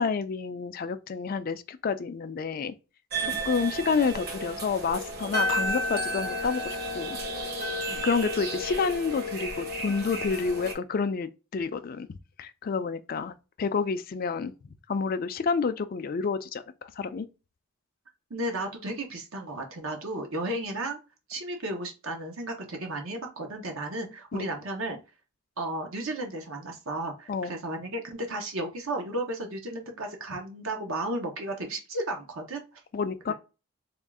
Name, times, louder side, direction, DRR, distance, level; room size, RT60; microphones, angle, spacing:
voice 1, 0.0-2.7 3.4-7.2 8.0-12.1 12.4-14.5 14.9-17.3 24.3-24.5 27.3-27.5 32.9-33.3, left 5 dB, 40° left, 0.3 m, -29 dB
sound 1, 3.1-10.7, equal, 45° right, 1.1 m, -32 dB
voice 2, 18.3-21.0 21.3-25.0 25.6-32.8 33.3-33.4, right 1 dB, 70° right, 0.9 m, -34 dB
3.6 x 2.4 x 3.5 m
head